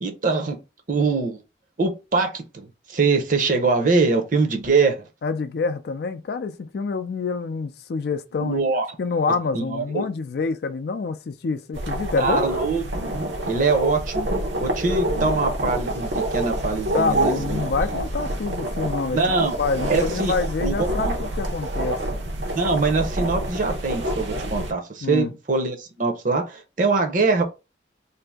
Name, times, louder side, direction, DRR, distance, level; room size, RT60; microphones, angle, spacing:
voice 1, 0.0-0.6 0.9-1.4 1.8-5.1 8.4-8.9 9.5-10.0 12.2-12.8 13.5-14.3 14.6-17.7 19.1-19.6 19.9-20.3 20.6-21.1 22.5-27.4, right 4 dB, 45° right, 0.7 m, -23 dB
voice 2, 5.2-8.7 9.0-12.5 16.9-22.0 25.0-25.3, left 4 dB, 60° left, 0.4 m, -27 dB
sound 1, 11.7-24.7, right 1 dB, 80° right, 0.9 m, -27 dB
2.7 x 2.6 x 3.5 m
head